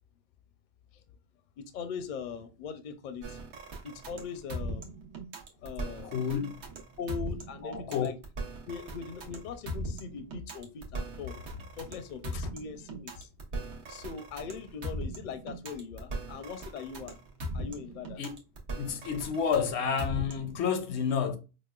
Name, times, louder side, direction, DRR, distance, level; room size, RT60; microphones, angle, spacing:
voice 1, 1.7-3.4 3.8-5.0 5.6-6.2 7.0-8.2 8.7-13.3 13.9-17.2 17.5-18.2, left 6 dB, 55° left, 0.6 m, -40 dB
sound 1, 3.2-20.6, right 1 dB, 80° right, 1.1 m, -39 dB
voice 2, 6.0-6.6 7.6-8.1 12.3-12.4 18.2-18.3 18.8-21.4, left 7 dB, 85° left, 0.9 m, -30 dB
5.0 x 2.1 x 2.3 m
omnidirectional pair, 1.1 m